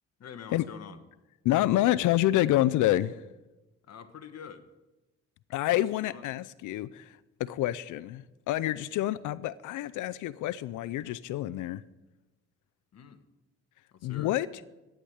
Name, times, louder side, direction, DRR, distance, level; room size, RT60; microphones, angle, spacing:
voice 1, 0.2-1.0 3.8-4.7 5.7-6.3 12.9-13.2 13.9-14.3, left 7 dB, 55° left, 1.4 m, -46 dB
voice 2, 1.4-3.2 5.5-11.8 14.0-14.5, left 14 dB, 80° left, 0.5 m, -28 dB
13.0 x 10.0 x 8.0 m
cardioid pair, 90°, 30 cm